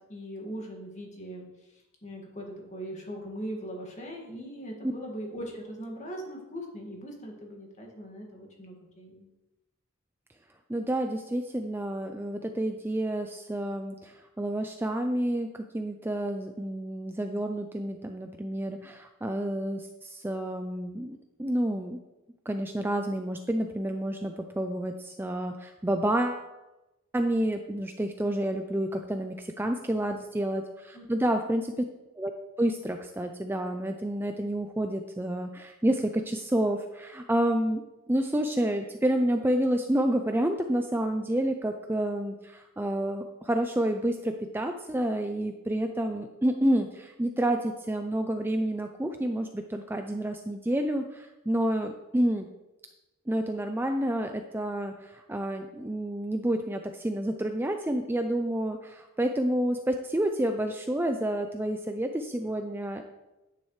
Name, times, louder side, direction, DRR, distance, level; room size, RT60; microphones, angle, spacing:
voice 1, 0.1-9.3 29.7-30.0 30.9-31.1 31.3-31.5, equal, 35° left, 0 dB, 1.9 m, -40 dB
voice 2, 10.7-22.0 22.5-26.4 27.1-31.7 32.2-32.3 32.6-37.8 38.1-52.5 53.3-63.0, right 1 dB, 10° right, 5 dB, 0.4 m, -29 dB
10.5 x 9.3 x 3.2 m, 1.0 s
head